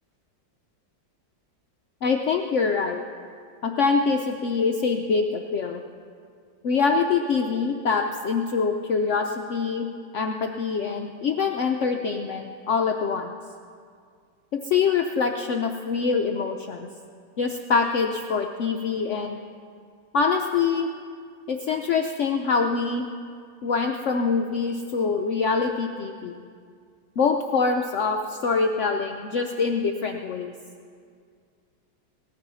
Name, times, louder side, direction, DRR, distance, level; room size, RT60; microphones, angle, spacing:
voice 1, 2.0-3.0 3.6-5.8 6.6-9.9 10.1-13.4 14.5-16.9 17.4-19.4 20.1-20.9 21.5-23.0 23.6-26.5 27.2-30.5, left 5 dB, 85° left, 3 dB, 0.6 m, -24 dB
18.5 x 14.5 x 4.0 m, 2.1 s
omnidirectional pair, 2.1 m